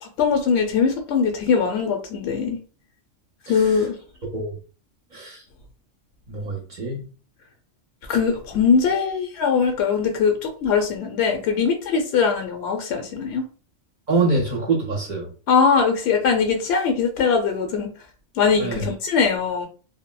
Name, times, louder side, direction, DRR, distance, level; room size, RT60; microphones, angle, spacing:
voice 1, 0.0-2.6 3.5-3.9 8.1-13.4 15.5-17.9 18.4-19.7, left 6 dB, 65° left, 3 dB, 0.8 m, -21 dB
voice 2, 6.3-7.0 14.1-15.3 18.6-18.9, right 3 dB, 45° right, 0 dB, 0.7 m, -25 dB
3.6 x 2.0 x 2.2 m, 0.36 s
omnidirectional pair, 1.3 m